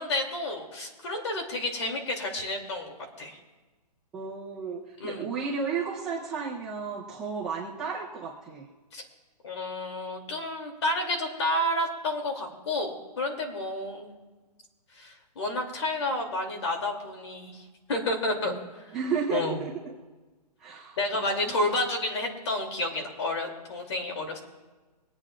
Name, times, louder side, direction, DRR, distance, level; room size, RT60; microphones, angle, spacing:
voice 1, 0.0-3.4 5.0-5.3 8.9-9.0 9.4-14.1 14.9-19.0 19.3-19.6 21.0-24.4, left 1 dB, 40° left, 2 dB, 2.7 m, -30 dB
voice 2, 4.1-8.7 18.4-18.7 18.9-19.7 20.6-21.5, right 5 dB, 5° right, -9 dB, 0.5 m, -33 dB
26.0 x 8.7 x 2.4 m, 1.3 s
hypercardioid pair, 180°, 21 cm